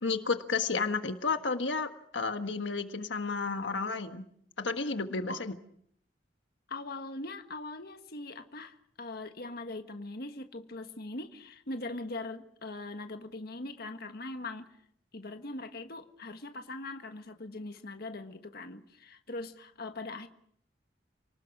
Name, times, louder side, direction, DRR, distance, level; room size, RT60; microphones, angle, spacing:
voice 1, 0.0-4.2 4.6-5.5, left 4 dB, 80° left, 7 dB, 1.5 m, -32 dB
voice 2, 6.7-14.7 15.1-20.3, left 2 dB, 55° left, 6 dB, 1.5 m, -41 dB
29.5 x 19.5 x 6.1 m, 0.67 s
head